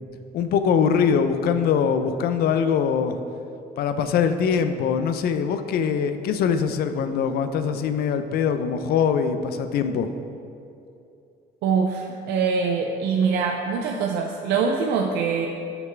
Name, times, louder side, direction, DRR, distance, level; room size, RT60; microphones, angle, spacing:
voice 1, 0.3-3.2 3.8-10.1, left 7 dB, 65° left, 9 dB, 0.5 m, -22 dB
voice 2, 11.6-15.5, right 5 dB, 80° right, 2 dB, 0.5 m, -23 dB
5.8 x 5.6 x 4.5 m, 2.6 s
cardioid pair, 110°, 17 cm